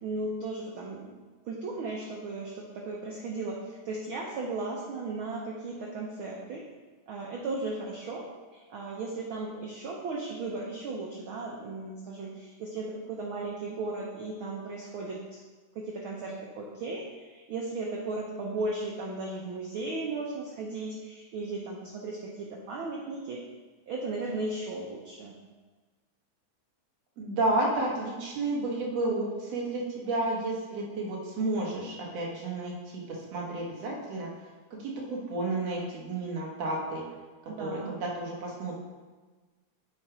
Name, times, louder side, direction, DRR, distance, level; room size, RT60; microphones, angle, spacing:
voice 1, 0.0-1.1 1.4-6.6 7.1-8.2 8.5-15.4 15.7-23.4 23.9-25.4 37.5-37.9, right 3 dB, 80° right, -1 dB, 1.1 m, -36 dB
voice 2, 27.2-34.3 34.8-37.1 37.6-38.8, right 2 dB, 60° right, -3 dB, 2.4 m, -31 dB
8.5 x 4.5 x 4.9 m, 1.3 s
omnidirectional pair, 3.4 m